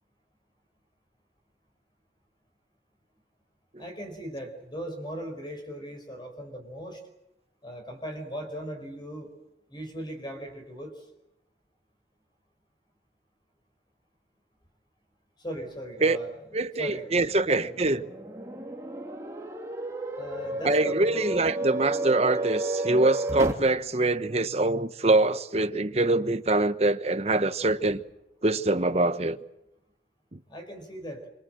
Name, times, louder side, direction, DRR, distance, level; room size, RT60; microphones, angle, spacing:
voice 1, 3.8-7.0 7.6-9.3 9.7-10.9 15.4-16.3 16.8-17.2 17.5-17.6 20.2-21.2 30.5-31.2, equal, 25° left, 4.8 m, -38 dB
voice 2, 16.5-18.1 20.6-28.0 28.4-29.4 30.3-30.4, right 2 dB, 35° right, 1.0 m, -24 dB
sound 1, 17.4-23.5, right 2 dB, 15° right, 2.5 m, -32 dB
26.0 x 24.5 x 7.8 m
head